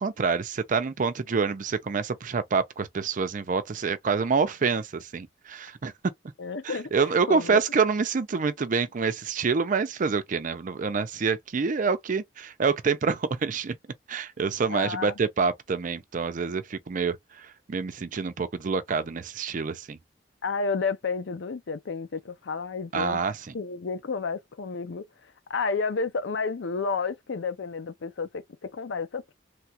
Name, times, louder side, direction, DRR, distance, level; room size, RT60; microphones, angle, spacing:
voice 1, 0.0-5.9 6.6-13.8 14.1-20.0 22.9-23.5, right 5 dB, 45° right, 0.5 m, -27 dB
voice 2, 6.4-6.9 7.3-7.6 14.7-15.2 20.4-23.2 23.5-28.4 28.7-29.3, left 4 dB, 85° left, 0.5 m, -31 dB
3.2 x 2.3 x 2.8 m
head